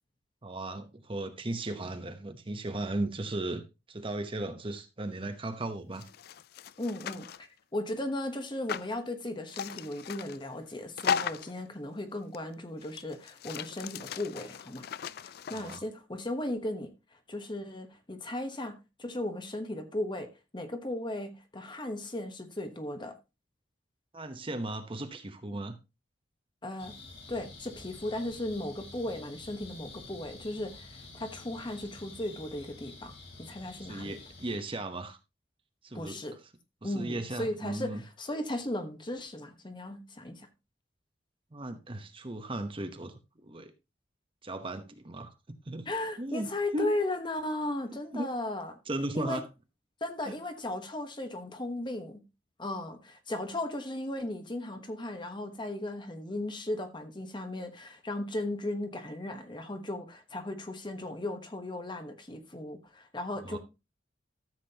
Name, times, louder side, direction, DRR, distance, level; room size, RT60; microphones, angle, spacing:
voice 1, 0.4-6.1 15.5-15.8 24.1-25.8 33.8-35.2 35.8-36.2 36.8-38.0 41.5-43.7 44.4-45.9 46.2-46.9 48.1-48.3 48.9-49.4 50.3-50.4 63.5-63.6, right 2 dB, 30° right, 0.9 m, -36 dB
sound 1, 5.9-7.4 8.7-8.9 9.5-10.4 11.0-11.6 12.3-12.4 12.8-15.8, left 7 dB, 55° left, 0.4 m, -37 dB
voice 2, 6.8-14.9 15.2-16.9 17.3-23.2 26.6-27.0 27.3-33.1 33.4-34.2 35.9-36.4 36.8-40.5 45.9-48.7 49.1-49.4 50.0-52.2 52.6-63.6, left 1 dB, 25° left, 1.2 m, -36 dB
sound 2, 26.8-34.6, left 3 dB, 70° left, 4.5 m, -49 dB
13.5 x 7.5 x 2.8 m
head